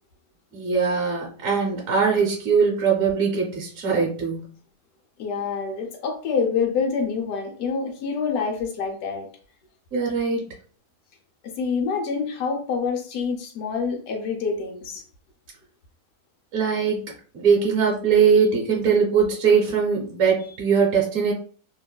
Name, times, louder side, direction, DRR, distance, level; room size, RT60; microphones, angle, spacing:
voice 1, 0.5-4.5 9.9-10.5 16.5-21.3, right 6 dB, 65° right, -3 dB, 1.1 m, -21 dB
voice 2, 5.2-9.3 11.4-15.0, left 5 dB, 70° left, 2 dB, 1.1 m, -26 dB
2.9 x 2.4 x 2.2 m, 0.43 s
omnidirectional pair, 1.7 m